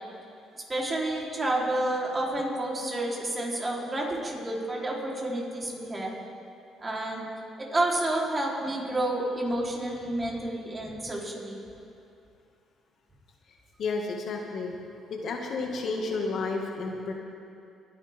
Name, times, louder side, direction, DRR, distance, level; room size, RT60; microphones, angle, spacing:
voice 1, 0.7-6.2 6.8-7.3 7.6-11.6, right 1 dB, 30° right, -3 dB, 3.9 m, -30 dB
voice 2, 13.8-14.7 15.1-17.1, left 3 dB, 60° left, 1 dB, 2.0 m, -31 dB
23.5 x 10.0 x 3.7 m, 2.6 s
supercardioid pair, 70°, 0 cm